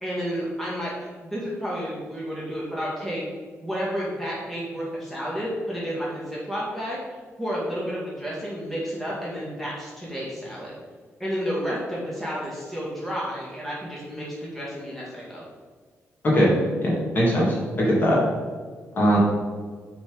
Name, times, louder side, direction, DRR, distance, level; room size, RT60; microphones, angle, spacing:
voice 1, 0.0-0.9 1.2-3.2 3.6-7.0 7.4-10.7 11.2-15.4, equal, 5° left, -7 dB, 2.0 m, -31 dB
voice 2, 16.8-18.2 19.0-19.2, equal, 40° left, -4 dB, 2.2 m, -20 dB
7.0 x 4.3 x 5.2 m, 1.5 s
cardioid pair, 140°, 5 cm